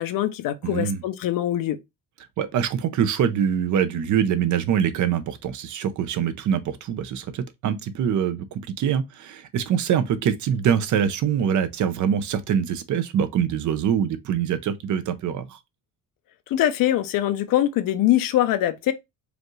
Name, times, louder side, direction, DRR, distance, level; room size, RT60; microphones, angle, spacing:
voice 1, 0.0-1.8 16.5-18.9, left 13 dB, 75° left, 0.7 m, -23 dB
voice 2, 0.6-1.0 2.4-15.6, right 8 dB, 60° right, 0.7 m, -24 dB
4.9 x 2.5 x 3.1 m
cardioid pair, 140°, 34 cm